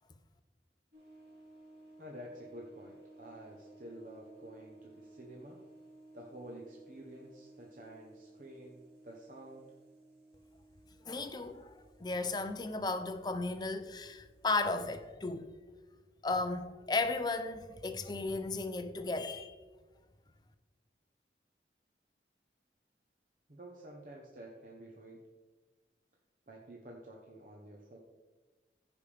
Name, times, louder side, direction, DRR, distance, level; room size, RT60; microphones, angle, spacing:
sound 1, 0.9-15.1, right 2 dB, 65° right, 2.6 m, -58 dB
voice 1, 2.0-5.6 6.1-9.7 23.5-25.2 26.5-28.0, right 1 dB, 45° right, 1.0 m, -50 dB
voice 2, 11.1-15.5 16.2-19.5, left 3 dB, 25° left, 0.5 m, -35 dB
15.5 x 5.1 x 3.4 m
head